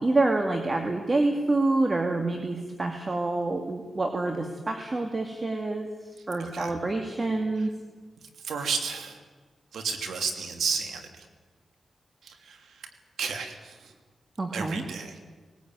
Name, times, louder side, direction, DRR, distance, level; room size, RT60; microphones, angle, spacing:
voice 1, 0.0-5.9 6.3-7.7 14.4-14.8, right 2 dB, 35° right, 5 dB, 2.5 m, -27 dB
voice 2, 6.4-6.7 7.6-7.7 8.2-9.2 9.7-11.3 12.2-12.9 13.2-13.9 14.5-15.2, right 5 dB, 90° right, 6 dB, 3.0 m, -33 dB
20.0 x 18.5 x 9.5 m, 1.4 s
cardioid pair, 70°, 0 cm